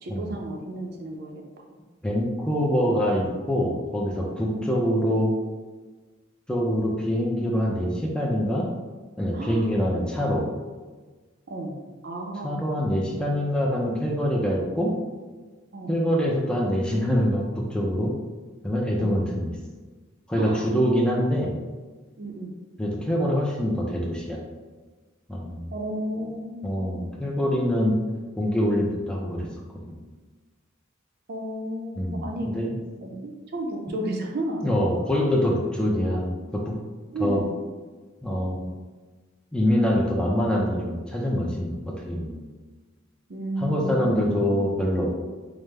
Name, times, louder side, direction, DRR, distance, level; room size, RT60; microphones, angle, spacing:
voice 1, 0.0-1.4 9.3-9.7 11.5-11.7 12.0-12.6 15.7-16.1 19.0-19.1 20.3-20.6 22.2-22.5 25.7-27.1 31.3-32.5 33.0-34.6 34.9-35.0 37.1-37.5 43.3-44.6, right 1 dB, 55° right, 1 dB, 0.6 m, -32 dB
voice 2, 2.0-5.3 6.5-8.7 9.2-10.4 12.4-14.9 15.9-18.1 18.6-19.6 20.3-21.5 22.8-24.4 25.3-25.6 26.6-27.9 28.4-29.5 29.9-30.0 32.0-32.8 33.9-34.0 34.6-36.7 37.2-37.4 38.2-38.6 39.5-41.8 42.0-42.4 43.6-45.3, equal, 5° left, -3 dB, 0.4 m, -25 dB
4.9 x 2.1 x 3.2 m, 1.3 s
head